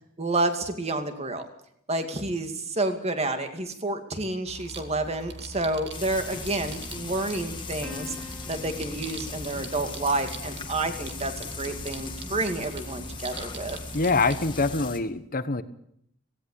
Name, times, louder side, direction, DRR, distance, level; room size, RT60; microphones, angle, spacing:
voice 1, 0.2-1.5 1.9-8.2 8.5-13.8, right 2 dB, 30° right, 7 dB, 2.3 m, -29 dB
sound 1, 4.4-14.8, right 2 dB, 55° right, 2.3 m, -42 dB
Frying (food), 5.9-15.0, left 4 dB, 25° left, 2.0 m, -39 dB
Plucked string instrument, 7.8-10.6, left 4 dB, 5° left, 2.7 m, -46 dB
voice 2, 13.9-15.6, left 3 dB, 40° left, 13 dB, 1.2 m, -25 dB
17.5 x 17.5 x 8.5 m, 0.71 s
head